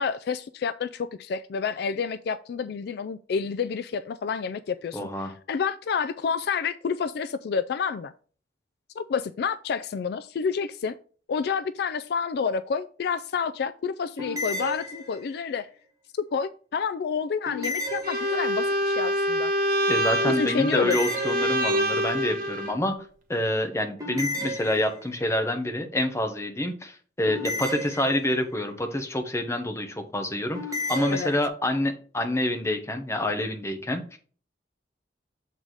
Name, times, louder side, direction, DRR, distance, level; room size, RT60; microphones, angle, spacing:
voice 1, 0.0-8.1 9.0-11.0 11.3-15.7 16.3-19.5 20.3-21.0 31.1-31.3, left 6 dB, 60° left, 0.3 m, -29 dB
voice 2, 4.9-5.3 19.9-23.0 23.3-30.6 30.9-34.2, left 1 dB, 15° left, 1.0 m, -27 dB
Future Alarm, 14.2-15.5 17.4-18.8 20.7-22.0 24.0-25.3 27.3-28.6 30.5-31.5, left 2 dB, 20° right, 1.3 m, -33 dB
Bowed string instrument, 18.0-22.7, equal, 50° right, 1.2 m, -26 dB
7.3 x 4.0 x 4.7 m
head